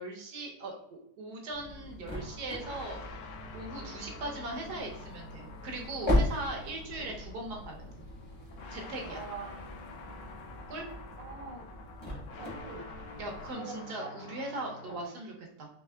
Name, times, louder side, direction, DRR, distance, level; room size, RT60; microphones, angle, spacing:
voice 1, 0.0-3.0 3.5-8.0 8.7-9.2 10.7-10.9 13.2-15.3 15.6-15.7, right 2 dB, 90° right, 1 dB, 1.5 m, -39 dB
sound 1, 1.5-13.5, left 1 dB, 25° left, 0.7 m, -37 dB
sound 2, 2.1-15.0, left 3 dB, 65° left, 0.8 m, -48 dB
voice 2, 3.7-4.0 6.9-7.2 9.0-9.7 11.2-11.7 12.4-12.9 13.6-14.1 14.9-15.1, right 4 dB, 60° right, 0 dB, 0.3 m, -45 dB
4.6 x 3.1 x 2.3 m, 0.76 s
omnidirectional pair, 1.7 m